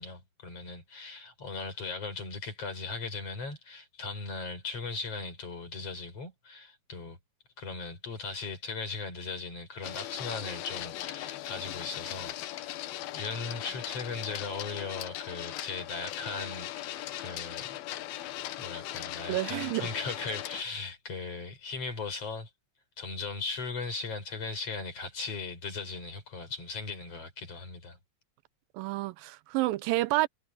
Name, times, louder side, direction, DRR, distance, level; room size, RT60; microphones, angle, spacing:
voice 1, 0.0-7.2 7.6-12.8 13.1-17.8 18.6-22.5 23.0-28.0, left 4 dB, 45° left, 5.7 m, -38 dB
Printer, 9.8-20.6, left 14 dB, 90° left, 2.9 m, -39 dB
voice 2, 19.3-19.9 28.7-30.3, right 18 dB, 85° right, 2.3 m, -29 dB
omnidirectional pair, 4.1 m